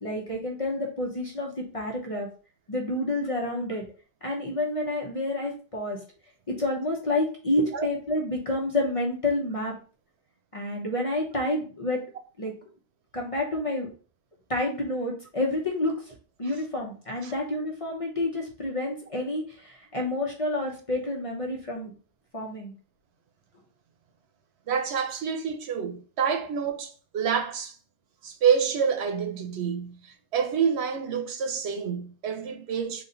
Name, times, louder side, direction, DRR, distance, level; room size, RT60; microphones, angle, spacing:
voice 1, 0.0-2.3 2.7-3.8 4.2-6.0 6.5-9.7 10.5-12.0 12.4-12.5 13.1-13.9 14.5-15.9 16.4-21.9 22.3-22.7, left 1 dB, 35° left, 0.8 m, -29 dB
voice 2, 24.7-27.8 28.2-33.0, right 7 dB, 90° right, 1.0 m, -28 dB
4.1 x 2.5 x 3.8 m
omnidirectional pair, 1.1 m